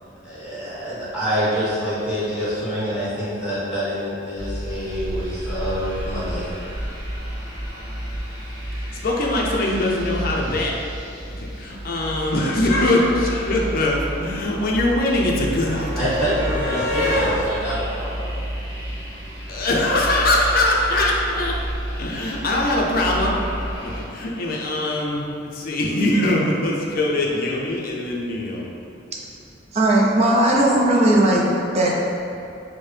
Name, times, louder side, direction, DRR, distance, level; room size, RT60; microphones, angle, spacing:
voice 1, 0.0-6.5 16.0-18.4, equal, 5° right, -11 dB, 1.1 m, -26 dB
sound 1, 4.3-24.0, equal, 60° right, 0.9 m, -31 dB
voice 2, 8.7-10.7 11.3-16.1 19.5-21.5 21.9-23.3 23.6-28.7, left 1 dB, 50° left, -2 dB, 0.5 m, -22 dB
sound 2, 13.7-19.3 20.5-20.7 20.9-21.1, left 1 dB, 15° left, 0.7 m, -31 dB
voice 3, 29.7-31.4 31.7-31.9, right 1 dB, 35° right, -3 dB, 0.5 m, -17 dB
4.5 x 2.1 x 3.2 m, 2.6 s
head